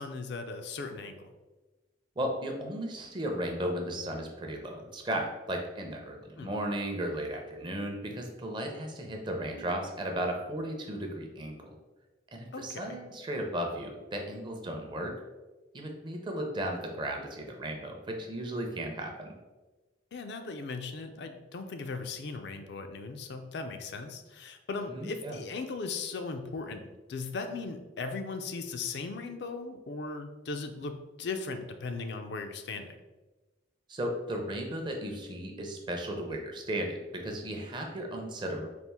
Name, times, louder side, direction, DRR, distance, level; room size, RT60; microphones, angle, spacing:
voice 1, 0.0-1.3 6.4-6.5 12.5-13.0 20.1-33.0, left 4 dB, 60° left, 6 dB, 0.4 m, -38 dB
voice 2, 2.2-11.7 12.3-15.2 15.7-19.3 24.9-25.4 33.9-38.7, right 1 dB, 25° right, 2 dB, 0.5 m, -35 dB
4.3 x 2.4 x 3.4 m, 1.2 s
head